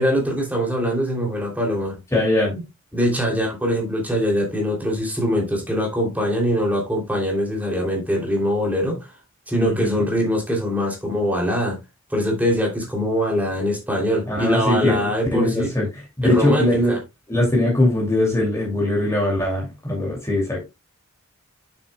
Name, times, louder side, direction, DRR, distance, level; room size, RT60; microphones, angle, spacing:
voice 1, 0.0-2.0 2.9-9.1 9.5-11.8 12.1-15.7 16.2-17.0, equal, 5° right, 2.9 m, -22 dB
voice 2, 2.1-2.6 9.5-10.0 14.3-17.0 17.3-20.7, left 1 dB, 15° left, 2.6 m, -21 dB
9.0 x 7.1 x 2.2 m
head